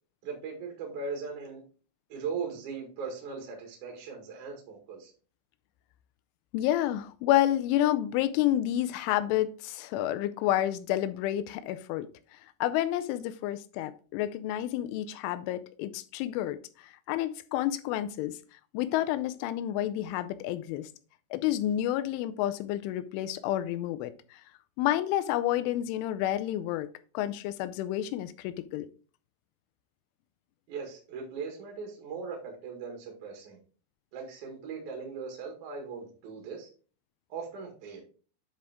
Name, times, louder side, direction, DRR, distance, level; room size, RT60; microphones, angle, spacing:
voice 1, 0.2-1.6 2.1-5.1 30.7-33.6 34.1-36.7 37.3-38.0, right 5 dB, 55° right, 0 dB, 2.6 m, -39 dB
voice 2, 6.5-12.1 12.6-16.6 16.8-18.4 18.7-20.9 21.3-24.1 24.8-26.9 27.1-28.9, left 13 dB, 90° left, 12 dB, 3.1 m, -29 dB
9.9 x 4.4 x 3.5 m, 0.39 s
omnidirectional pair, 5.5 m